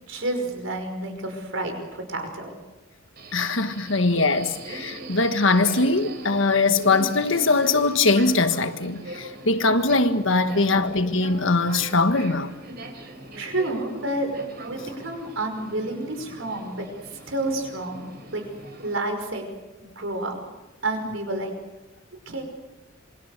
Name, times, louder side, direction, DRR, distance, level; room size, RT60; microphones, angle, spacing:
voice 1, 0.1-2.5 3.8-4.0 10.5-10.9 13.4-14.3 14.6-18.1 18.3-18.4 18.8-19.5 19.8-20.4 20.8-21.5 22.3-22.4, right 2 dB, 65° right, 5.4 m, -30 dB
Subway metro underground, 3.2-18.9, right 2 dB, 50° right, 4.1 m, -41 dB
voice 2, 3.3-12.5, left 3 dB, 65° left, 1.5 m, -21 dB
27.5 x 24.0 x 6.8 m
head